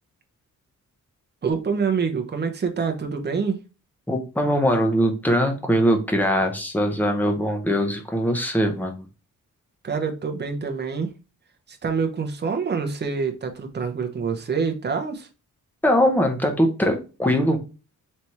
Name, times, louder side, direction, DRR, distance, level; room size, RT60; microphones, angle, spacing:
voice 1, 1.4-3.6 9.8-11.1 11.7-15.3, right 5 dB, 30° right, 0.8 m, -26 dB
voice 2, 4.1-9.0 15.8-17.6, equal, 5° left, 0.8 m, -21 dB
4.3 x 3.4 x 3.0 m
wide cardioid pair, 175°, 33 cm